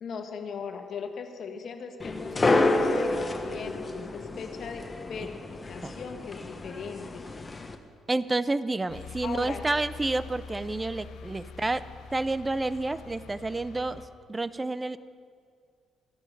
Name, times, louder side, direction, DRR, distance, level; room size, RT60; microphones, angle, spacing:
voice 1, 0.0-7.2 9.2-9.6 11.5-11.6, left 5 dB, 60° left, 5 dB, 1.4 m, -39 dB
sound 1, 2.0-7.7, left 2 dB, 25° left, 1.2 m, -29 dB
voice 2, 8.1-11.8 12.1-14.0 14.3-15.0, right 2 dB, 20° right, 15 dB, 0.5 m, -29 dB
sound 2, 8.9-14.1, left 5 dB, 80° left, 1.0 m, -44 dB
14.5 x 12.5 x 5.4 m, 2.1 s
cardioid pair, 90°, 0 cm